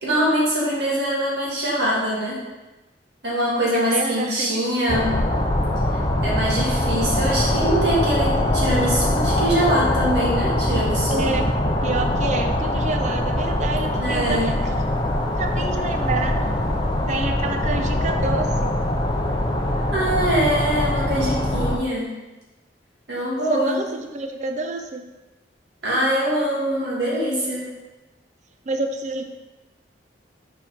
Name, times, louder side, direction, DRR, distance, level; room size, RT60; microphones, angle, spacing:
voice 1, 0.0-2.4 3.2-5.2 6.2-11.3 14.0-14.5 19.9-22.1 23.1-23.8 25.8-27.7, right 1 dB, 70° right, -6 dB, 2.1 m, -23 dB
voice 2, 3.7-4.6 11.1-11.5 11.8-14.7 15.4-16.4 17.1-18.8 23.5-25.0 28.6-29.2, right 3 dB, 40° right, 5 dB, 0.6 m, -28 dB
sound 1, 4.9-21.8, left 1 dB, 25° left, 0.6 m, -22 dB
7.3 x 4.3 x 3.6 m, 1.1 s
head